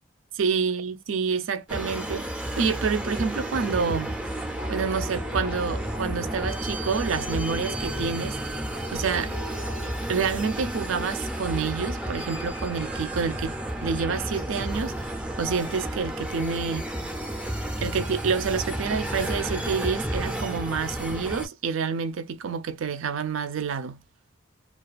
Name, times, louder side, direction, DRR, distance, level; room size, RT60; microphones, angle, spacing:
voice 1, 0.4-2.3 2.6-4.2 4.7-8.4 8.9-9.3 10.1-13.6 13.8-16.9 17.8-24.0, right 5 dB, 85° right, 0.4 m, -28 dB
sound 1, 1.7-21.5, right 1 dB, 5° right, 0.4 m, -32 dB
sound 2, 4.4-10.2, left 4 dB, 85° left, 0.4 m, -44 dB
2.3 x 2.3 x 2.3 m
head